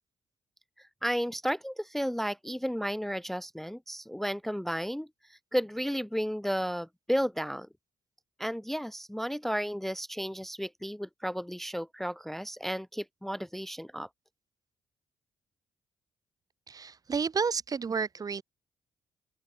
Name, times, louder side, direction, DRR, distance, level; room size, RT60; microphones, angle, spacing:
voice 1, 1.0-7.7 8.4-14.1, equal, 5° left, 0.4 m, -33 dB
voice 2, 16.7-18.4, right 5 dB, 40° right, 0.7 m, -31 dB
open air
hypercardioid pair, 50°, 10 cm